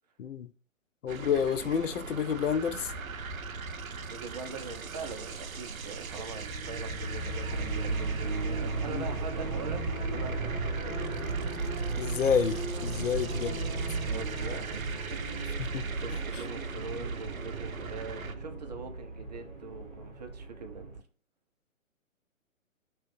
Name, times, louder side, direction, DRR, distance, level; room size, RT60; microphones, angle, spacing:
voice 1, 0.2-0.5 1.0-2.9 8.9-9.0 12.0-13.5 15.6-15.9, left 7 dB, 65° left, 0.6 m, -29 dB
sound 1, 1.1-18.4, right 4 dB, 80° right, 0.6 m, -40 dB
voice 2, 4.0-11.1 14.1-15.7 15.9-21.0, right 4 dB, 30° right, 0.5 m, -43 dB
sound 2, 6.1-21.0, right 3 dB, 15° right, 1.3 m, -35 dB
3.1 x 3.0 x 3.1 m
figure-of-eight pair, 130°, 41 cm